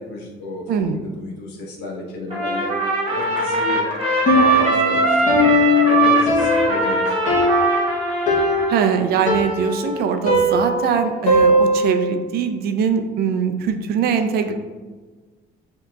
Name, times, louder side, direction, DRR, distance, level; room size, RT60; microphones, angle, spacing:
voice 1, 0.0-2.8 3.1-3.8 4.3-7.2 14.4-14.5, left 2 dB, 85° left, 0 dB, 1.0 m, -32 dB
voice 2, 0.7-1.0 8.7-14.5, right 7 dB, 70° right, 8 dB, 0.5 m, -22 dB
Trumpet, 2.3-8.9, right 3 dB, 30° right, 1.3 m, -21 dB
Piano, 4.3-12.1, left 1 dB, 45° left, 1.0 m, -19 dB
6.6 x 2.9 x 2.3 m, 1.3 s
cardioid pair, 110°, 17 cm